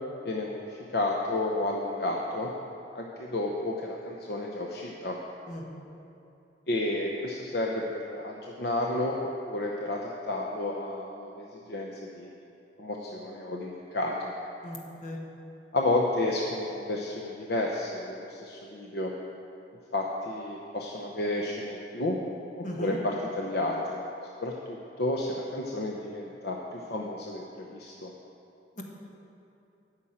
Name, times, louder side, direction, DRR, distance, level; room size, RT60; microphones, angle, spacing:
voice 1, 0.2-2.5 2.9-5.2 6.7-9.2 9.5-12.3 12.8-14.3 15.7-19.1 19.9-22.2 22.6-24.0 24.4-28.1, left 2 dB, 60° left, -1 dB, 0.8 m, -31 dB
voice 2, 14.6-15.2 22.6-23.0 28.8-28.9, equal, 45° left, -1 dB, 1.5 m, -36 dB
9.8 x 6.2 x 8.7 m, 2.8 s
head